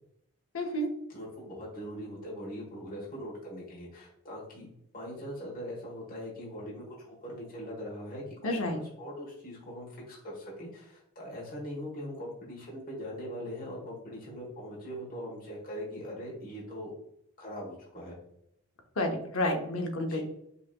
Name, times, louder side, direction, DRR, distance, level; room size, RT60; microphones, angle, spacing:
voice 1, 0.5-0.9 8.4-8.8 19.0-20.2, left 1 dB, 65° left, 3 dB, 0.8 m, -30 dB
voice 2, 1.1-4.7 4.9-16.9 17.4-18.2 20.1-20.2, equal, 40° left, -4 dB, 1.2 m, -41 dB
5.5 x 2.8 x 2.2 m, 0.78 s
head